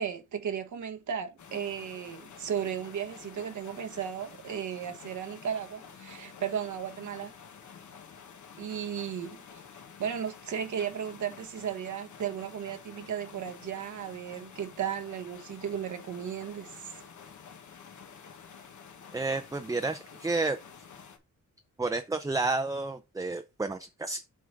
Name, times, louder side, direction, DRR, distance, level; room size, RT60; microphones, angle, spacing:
voice 1, 0.0-7.3 8.6-9.6 10.0-17.1, right 8 dB, 75° right, 1.1 m, -35 dB
sound 1, 1.4-21.2, left 6 dB, 75° left, 1.3 m, -50 dB
voice 2, 19.1-20.6 21.8-24.3, right 3 dB, 10° right, 0.5 m, -31 dB
7.7 x 4.8 x 3.6 m
wide cardioid pair, 140°, 30 cm